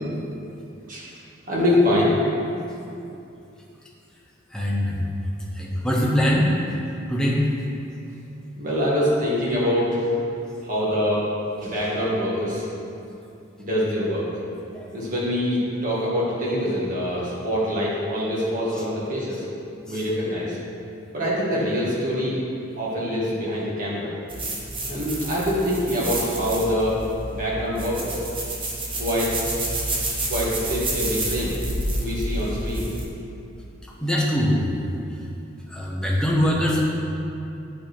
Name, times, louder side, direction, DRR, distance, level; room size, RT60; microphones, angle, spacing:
voice 1, 1.5-2.2 8.6-10.3 10.6-11.2 11.6-12.7 13.6-14.3 14.9-19.5 19.9-20.6 21.1-22.4 22.8-24.1 24.9-27.0 27.3-28.3 29.0-29.4 30.3-31.6 32.0-32.9, left 1 dB, 40° right, -6 dB, 2.0 m, -24 dB
voice 2, 4.5-5.0 5.6-6.5 7.1-7.4 14.7-14.8 34.0-34.6 35.7-36.8, equal, 5° left, -4 dB, 1.0 m, -22 dB
sound 1, 24.3-33.0, right 1 dB, 25° right, 1.1 m, -29 dB
9.0 x 5.5 x 4.5 m, 2.7 s
head